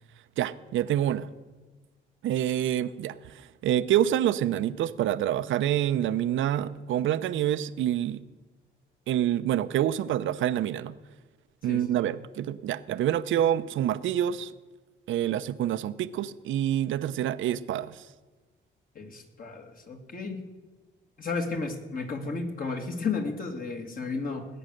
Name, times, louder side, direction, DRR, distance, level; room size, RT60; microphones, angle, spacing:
voice 1, 0.4-1.3 2.2-8.2 9.1-11.0 11.6-14.5 15.1-18.1, right 11 dB, 75° right, 13 dB, 0.7 m, -27 dB
voice 2, 11.7-12.1 18.9-20.4 21.2-24.5, left 4 dB, 45° left, 3 dB, 2.4 m, -33 dB
19.0 x 8.7 x 6.6 m, 1.2 s
cardioid pair, 90°, 20 cm